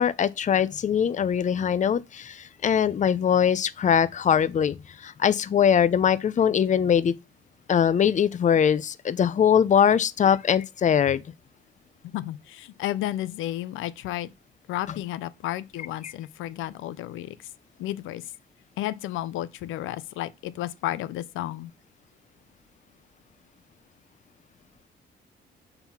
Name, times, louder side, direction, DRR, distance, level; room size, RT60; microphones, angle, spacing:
voice 1, 0.0-7.1 7.7-11.2 16.0-16.1, left 8 dB, 40° left, 0.6 m, -22 dB
voice 2, 12.1-14.3 14.7-17.5 17.8-18.3 18.8-21.7, left 14 dB, 90° left, 0.6 m, -32 dB
6.9 x 3.8 x 5.7 m
cardioid pair, 90°, 20 cm